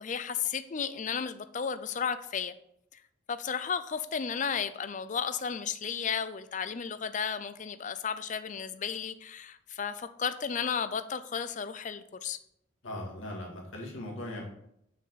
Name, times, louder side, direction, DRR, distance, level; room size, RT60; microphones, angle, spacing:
voice 1, 0.0-2.5 2.9-3.0 3.3-12.4, left 7 dB, 40° left, 12 dB, 0.4 m, -33 dB
voice 2, 12.8-14.4, left 1 dB, 85° left, -2 dB, 2.2 m, -39 dB
6.9 x 6.0 x 4.1 m, 0.76 s
head